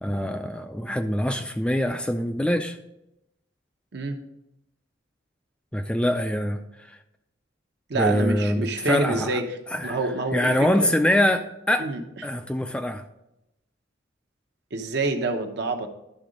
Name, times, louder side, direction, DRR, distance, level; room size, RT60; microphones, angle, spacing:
voice 1, 0.0-2.8 5.7-6.6 7.9-9.4 9.7-10.0 10.3-11.9 12.2-13.0, left 1 dB, 5° left, 7 dB, 0.3 m, -24 dB
voice 2, 7.9-10.9 11.8-12.0 14.7-15.9, right 3 dB, 60° right, 5 dB, 0.9 m, -27 dB
11.5 x 3.8 x 5.1 m, 0.87 s
head